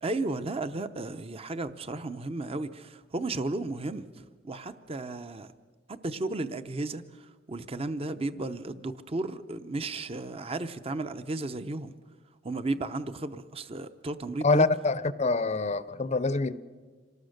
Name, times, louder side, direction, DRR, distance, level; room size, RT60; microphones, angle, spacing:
voice 1, 0.0-4.0 4.4-5.5 5.9-11.9 12.4-14.7, right 2 dB, 30° right, 11 dB, 0.7 m, -34 dB
voice 2, 14.4-16.6, left 3 dB, 35° left, 15 dB, 0.6 m, -25 dB
26.5 x 19.0 x 6.6 m, 1.5 s
head